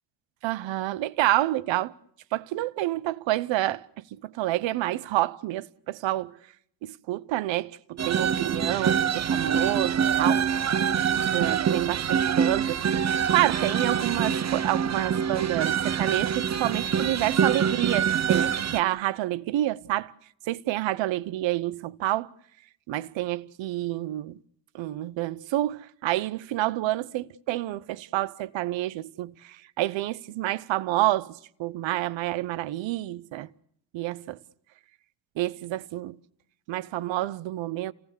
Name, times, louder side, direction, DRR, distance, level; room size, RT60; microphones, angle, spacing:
voice 1, 0.4-1.9 2.3-6.4 6.8-10.5 11.3-12.9 13.3-20.1 20.5-22.3 22.9-24.4 24.7-33.5 33.9-34.4 35.4-36.2 36.7-37.9, right 15 dB, 85° right, 1.0 m, -28 dB
sound 1, 8.0-18.8, right 7 dB, 35° right, 0.9 m, -25 dB
29.0 x 18.0 x 6.8 m
cardioid pair, 90°, 44 cm